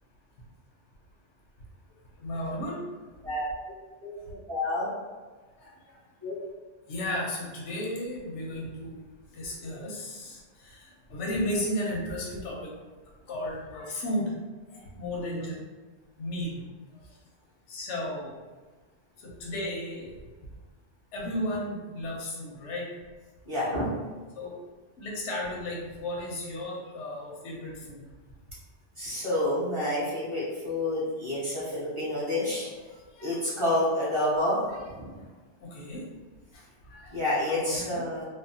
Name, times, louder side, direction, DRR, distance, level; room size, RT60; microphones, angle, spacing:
voice 1, 2.2-2.8 6.9-9.0 9.4-10.4 11.1-12.7 13.3-14.3 15.0-15.5 16.2-16.6 17.7-18.3 19.4-20.1 21.1-22.8 24.4-24.5 25.0-28.0 33.2-33.4 35.7-36.0 36.9-37.1 37.5-38.0, left 1 dB, 85° left, -2 dB, 1.0 m, -33 dB
voice 2, 4.5-4.9 6.2-6.3 15.2-15.5 23.4-23.8 29.0-32.7 33.2-34.6 35.0-35.1 37.1-38.3, left 1 dB, 30° right, -10 dB, 1.1 m, -28 dB
3.4 x 2.0 x 2.7 m, 1.3 s
omnidirectional pair, 1.2 m